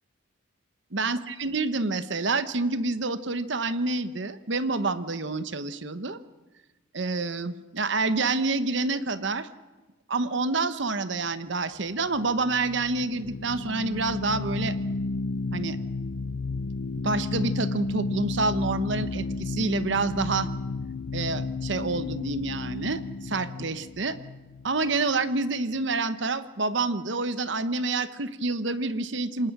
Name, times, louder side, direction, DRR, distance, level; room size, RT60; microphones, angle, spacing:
voice 1, 0.9-6.2 6.9-9.5 10.1-14.8 15.5-15.8 17.0-20.5 21.1-24.2 24.6-29.5, right 3 dB, 60° right, 13 dB, 1.0 m, -28 dB
sound 1, 12.0-25.2, left 3 dB, 85° left, 0.6 m, -32 dB
27.5 x 19.0 x 6.1 m, 1.2 s
head